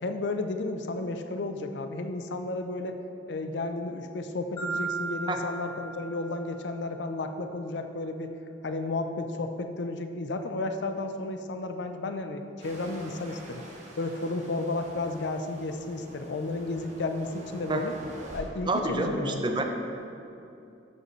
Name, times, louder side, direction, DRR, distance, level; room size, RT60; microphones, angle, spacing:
voice 1, 0.0-3.0 3.3-8.3 8.6-13.6 14.0-18.0 18.3-19.6, left 2 dB, 70° left, 7 dB, 0.5 m, -33 dB
Marimba xylophone, 4.6-6.8, right 4 dB, 20° left, 0.9 m, -36 dB
sound 1, 12.6-18.4, right 1 dB, 40° right, 1.2 m, -46 dB
voice 2, 18.7-19.6, right 2 dB, 25° right, 5 dB, 0.5 m, -28 dB
12.5 x 5.3 x 3.1 m, 2.7 s
head